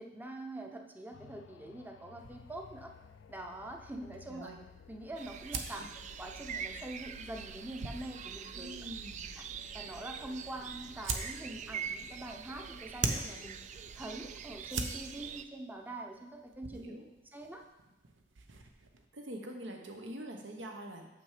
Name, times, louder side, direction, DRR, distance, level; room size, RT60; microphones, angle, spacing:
voice 1, 0.0-2.9 3.3-4.5 4.9-5.9 6.2-8.8 9.4-9.5 9.7-13.6 14.0-17.0 17.3-17.6, right 1 dB, 10° right, 3 dB, 0.7 m, -44 dB
sound 1, 1.1-14.8 15.3-15.4, left 6 dB, 80° left, 0.3 m, -58 dB
sound 2, 2.2-19.0, right 4 dB, 90° right, 0.7 m, -44 dB
sound 3, 5.2-15.5, right 7 dB, 40° right, 0.3 m, -44 dB
voice 2, 8.5-9.3 16.7-17.0 19.1-21.1, right 1 dB, 70° right, 3 dB, 1.1 m, -45 dB
7.0 x 6.0 x 4.9 m, 1.0 s
head